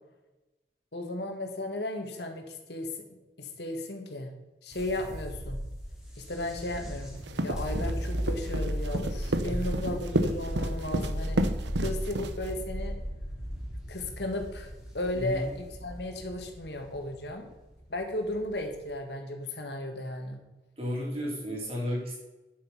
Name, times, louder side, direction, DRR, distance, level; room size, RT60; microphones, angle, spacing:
voice 1, 0.9-2.9 3.4-4.3 4.6-5.6 6.2-7.1 7.4-11.4 11.8-13.0 13.9-17.5 17.9-20.4, left 1 dB, 70° left, 4 dB, 2.0 m, -35 dB
sound 1, 4.7-18.9, equal, 5° right, 2.7 m, -36 dB
sound 2, 7.2-12.6, right 1 dB, 80° right, 0.9 m, -31 dB
voice 2, 15.2-15.5 20.8-22.1, left 1 dB, 35° right, -3 dB, 3.9 m, -33 dB
10.0 x 7.8 x 5.7 m, 1.1 s
head